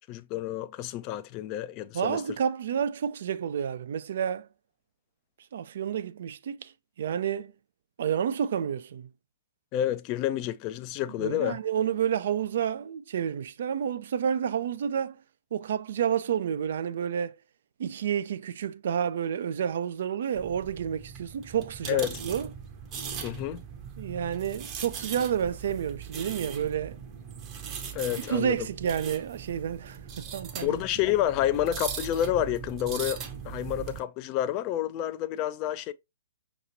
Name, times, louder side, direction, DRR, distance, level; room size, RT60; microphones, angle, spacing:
voice 1, 0.1-2.2 9.7-11.6 21.9-22.2 23.2-23.6 27.9-28.6 30.6-35.9, left 12 dB, 30° left, 0.3 m, -29 dB
voice 2, 1.9-4.5 5.5-6.7 7.0-7.5 8.0-9.1 11.2-15.2 15.5-17.4 17.8-22.5 24.0-27.0 28.3-30.8, right 8 dB, 55° right, 0.3 m, -30 dB
sound 1, 20.3-34.0, right 7 dB, 25° right, 0.7 m, -40 dB
5.5 x 3.0 x 2.6 m
figure-of-eight pair, 125°, 0 cm